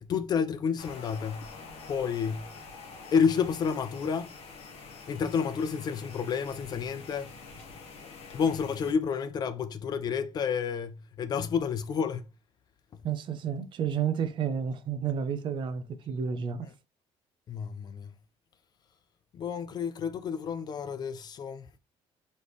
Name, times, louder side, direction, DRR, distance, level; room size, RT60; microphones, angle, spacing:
voice 1, 0.0-1.5 1.9-2.5 3.1-4.3 5.1-7.3 8.3-12.3 12.9-13.0 17.5-18.1 19.3-21.7, left 6 dB, 40° left, 0.4 m, -30 dB
sound 1, 0.8-8.9, left 4 dB, 65° left, 1.5 m, -46 dB
voice 2, 13.0-16.7, right 7 dB, 45° right, 0.6 m, -31 dB
4.2 x 3.4 x 3.1 m
cardioid pair, 160°, 11 cm